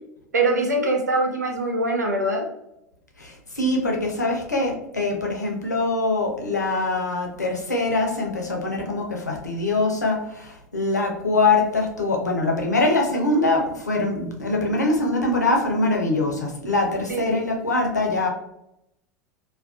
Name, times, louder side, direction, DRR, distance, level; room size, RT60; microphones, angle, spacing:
voice 1, 0.3-2.5 17.1-17.4, right 2 dB, 85° right, 3 dB, 0.4 m, -23 dB
voice 2, 3.2-18.3, left 2 dB, 85° left, 1 dB, 0.6 m, -23 dB
2.4 x 2.2 x 2.3 m, 0.82 s
figure-of-eight pair, 80°, 9 cm